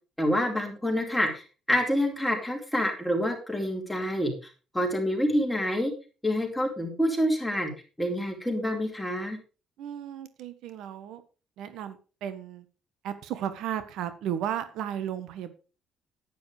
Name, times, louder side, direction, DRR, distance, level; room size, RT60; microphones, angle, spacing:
voice 1, 0.2-4.3 4.7-5.9 6.2-7.7 8.0-9.4, equal, 5° left, 1 dB, 4.4 m, -27 dB
voice 2, 9.8-11.2 11.6-12.6 13.0-15.5, right 10 dB, 80° right, 12 dB, 1.4 m, -34 dB
10.0 x 10.0 x 4.9 m, 0.34 s
cardioid pair, 110°, 0 cm